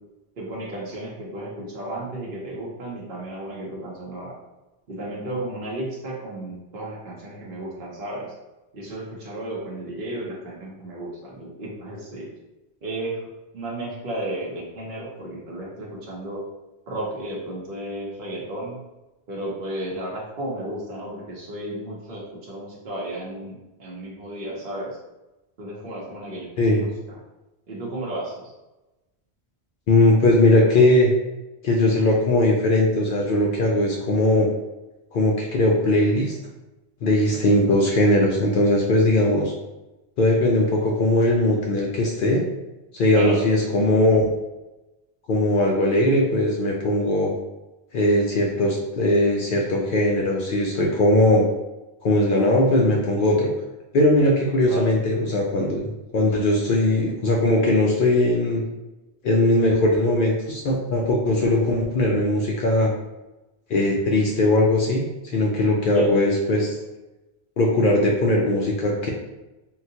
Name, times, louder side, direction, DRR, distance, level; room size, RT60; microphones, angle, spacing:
voice 1, 0.4-4.4 4.9-8.3 8.7-12.3 12.8-13.3 13.5-16.4 16.9-18.8 19.3-25.0 25.6-27.2 27.7-28.5 37.0-37.4 43.1-43.4 54.7-54.9 65.9-66.1, right 1 dB, 55° right, -4 dB, 0.9 m, -33 dB
voice 2, 29.9-31.1 31.6-34.5 35.1-36.4 37.0-39.5 40.2-42.4 42.9-44.3 45.3-47.3 47.9-51.5 52.0-53.5 53.9-58.6 59.2-62.9 63.7-66.7 67.6-69.1, left 1 dB, 60° left, -1 dB, 0.6 m, -19 dB
3.8 x 2.3 x 2.7 m, 1.0 s
omnidirectional pair, 1.1 m